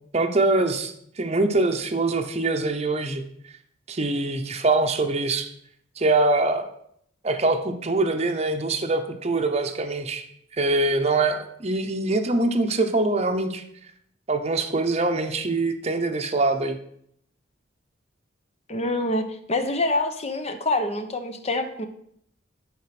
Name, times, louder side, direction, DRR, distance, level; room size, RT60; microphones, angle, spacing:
voice 1, 0.1-3.2 3.9-5.5 6.0-6.7 7.2-10.2 10.6-13.6 14.3-16.8, right 2 dB, 35° right, 6 dB, 0.8 m, -23 dB
voice 2, 18.7-21.9, left 2 dB, 35° left, 8 dB, 0.8 m, -26 dB
11.0 x 5.2 x 5.9 m, 0.70 s
head